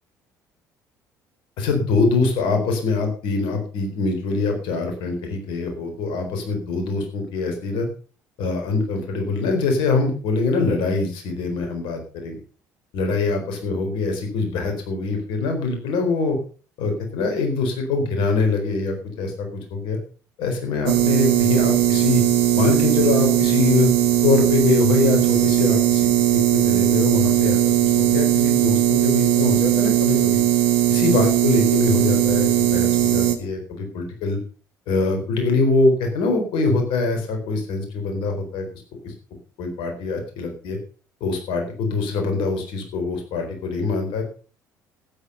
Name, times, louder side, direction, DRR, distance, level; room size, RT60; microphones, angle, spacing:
voice 1, 1.6-7.9 8.4-12.4 12.9-16.4 16.8-20.0 20.4-22.2 22.5-23.9 24.2-26.1 26.5-30.4 30.9-34.4 34.9-38.7 39.0-39.1 39.6-40.8 41.2-44.2, left 3 dB, 60° left, 4 dB, 4.2 m, -23 dB
sound 1, 20.9-33.4, right 12 dB, 65° right, 1.6 m, -18 dB
13.0 x 9.7 x 5.5 m, 0.38 s
figure-of-eight pair, 55°, 9 cm